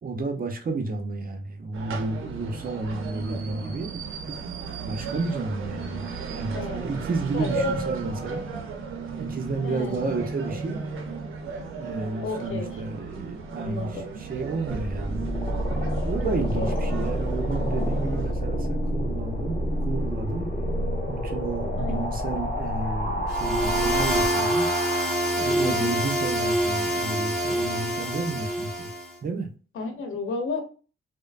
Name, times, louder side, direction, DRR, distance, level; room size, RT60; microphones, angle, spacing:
voice 1, 0.0-4.0 4.3-4.4 4.8-8.5 9.2-10.8 11.8-15.4 16.0-19.6 19.9-20.5 21.1-24.7 25.4-28.9 29.2-29.5, right 3 dB, 45° right, 5 dB, 0.7 m, -31 dB
sound 1, 1.7-18.3, right 5 dB, 80° right, 0.6 m, -35 dB
voice 2, 6.5-6.9 7.3-7.7 9.6-10.1 12.2-12.8 13.6-14.1 16.2-16.7 21.8-21.9 25.6-25.9 29.7-30.6, left 4 dB, 85° left, 4 dB, 0.8 m, -32 dB
sound 2, 14.7-25.6, equal, 40° left, 1.1 m, -28 dB
sound 3, 23.3-29.1, equal, ahead, 1.2 m, -26 dB
3.0 x 2.1 x 2.3 m, 0.36 s
cardioid pair, 100°, 21 cm